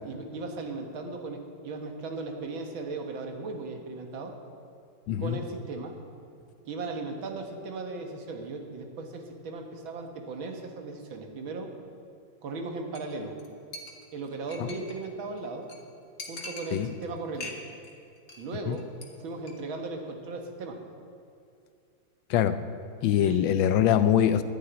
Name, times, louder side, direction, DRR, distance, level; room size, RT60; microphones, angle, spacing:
voice 1, 0.1-4.4 5.2-6.0 6.6-11.7 12.4-13.4 14.1-15.7 16.3-17.6 18.4-18.9 19.2-20.8 23.2-23.5, right 3 dB, 85° right, 3 dB, 2.1 m, -37 dB
voice 2, 5.1-5.4 14.6-14.7 16.7-16.9 18.7-18.8 22.3-22.6 23.0-24.4, left 10 dB, 80° left, 11 dB, 1.4 m, -23 dB
Chink clink, 12.9-13.1 13.4-13.5 13.7-15.1 15.4-15.5 15.7-15.8 16.2-17.1 17.4-17.9 18.2-18.5 18.7-19.1 19.4-19.5, left 2 dB, 40° left, 1.5 m, -42 dB
11.5 x 7.2 x 9.6 m, 2.6 s
omnidirectional pair, 2.1 m